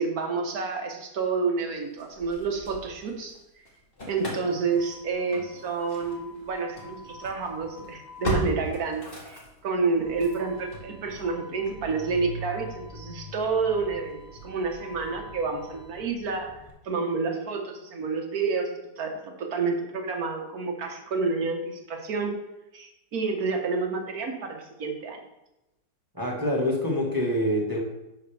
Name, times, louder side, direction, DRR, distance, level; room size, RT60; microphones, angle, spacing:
voice 1, 0.0-3.3 4.1-22.4 22.7-25.2, right 4 dB, 60° right, 3 dB, 1.7 m, -29 dB
Engine starting / Slam, 2.0-3.4 3.7-16.7, right 1 dB, 35° left, 2.0 m, -39 dB
voice 2, 26.1-27.8, left 1 dB, 15° right, -3 dB, 1.5 m, -26 dB
11.0 x 6.5 x 3.5 m, 0.92 s
omnidirectional pair, 1.8 m